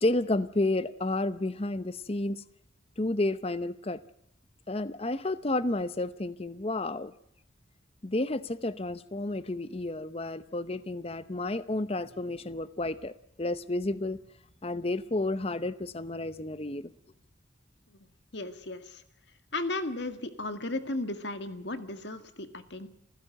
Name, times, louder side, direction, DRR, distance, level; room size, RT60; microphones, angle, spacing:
voice 1, 0.0-2.4 3.0-4.0 4.7-7.1 8.0-13.1 13.4-14.2 14.6-16.9, left 2 dB, 30° left, 0.7 m, -31 dB
voice 2, 18.3-19.0 19.5-22.9, left 2 dB, 60° left, 2.0 m, -35 dB
27.5 x 15.5 x 7.8 m
head